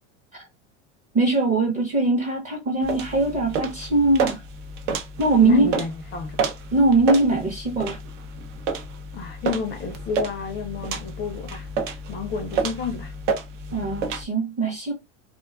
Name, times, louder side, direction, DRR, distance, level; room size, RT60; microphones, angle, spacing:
voice 1, 1.1-4.4 5.2-5.7 6.7-8.0 13.7-14.9, right 3 dB, 20° right, 0.6 m, -21 dB
sound 1, 2.8-14.2, right 4 dB, 75° right, 0.7 m, -30 dB
voice 2, 5.4-6.6 9.1-11.7 12.1-13.1, left 5 dB, 30° left, 0.4 m, -31 dB
2.4 x 2.2 x 2.3 m
supercardioid pair, 115°, 37 cm